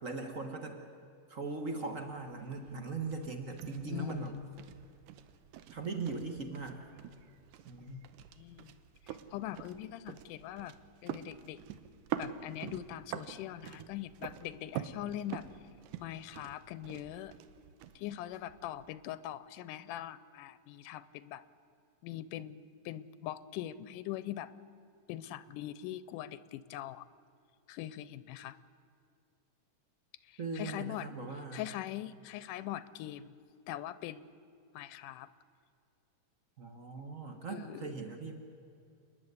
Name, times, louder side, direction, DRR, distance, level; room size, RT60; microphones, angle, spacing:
voice 1, 0.0-0.8 1.3-4.3 5.7-6.8 7.6-8.0 30.4-31.6 36.6-38.3, right 3 dB, 55° right, 5 dB, 0.9 m, -39 dB
sound 1, 1.9-18.9, right 10 dB, 90° right, 2.4 m, -46 dB
voice 2, 3.9-4.5 7.9-8.1 8.4-8.7 9.1-10.7 11.0-11.6 12.2-15.4 16.0-17.3 18.0-21.4 22.0-24.5 25.1-27.1 27.7-28.6 30.3-31.1 31.5-33.3 33.7-34.3 34.7-35.3 37.5-38.0, left 13 dB, 90° left, 16 dB, 2.2 m, -42 dB
28.5 x 10.5 x 9.6 m, 2.4 s
omnidirectional pair, 3.6 m